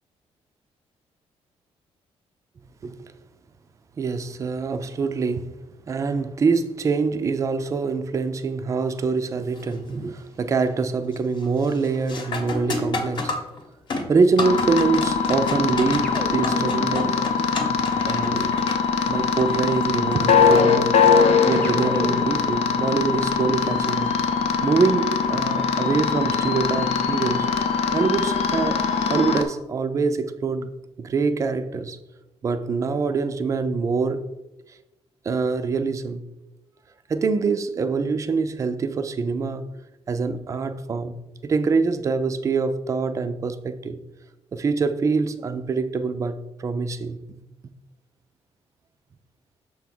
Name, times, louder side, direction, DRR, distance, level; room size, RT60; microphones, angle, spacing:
voice 1, 4.0-5.5 5.9-13.3 14.1-17.2 18.0-18.6 19.1-21.1 21.5-24.1 24.6-27.5 27.9-28.8 29.1-30.7 31.0-32.0 32.4-34.3 35.2-36.2 37.1-39.7 40.1-41.2 41.4-44.0 44.5-47.2, right 4 dB, 30° right, 0.4 m, -24 dB
sound 1, 9.5-9.9 10.3-10.8 11.1-24.6 27.1-27.2 28.1-28.3, left 2 dB, 45° left, 1.0 m, -34 dB
sound 2, 14.4-29.4, left 5 dB, 70° left, 0.6 m, -22 dB
sound 3, 16.0-18.5 21.6-22.6, left 1 dB, 10° left, 0.7 m, -35 dB
6.0 x 3.5 x 5.9 m
wide cardioid pair, 170°, 11 cm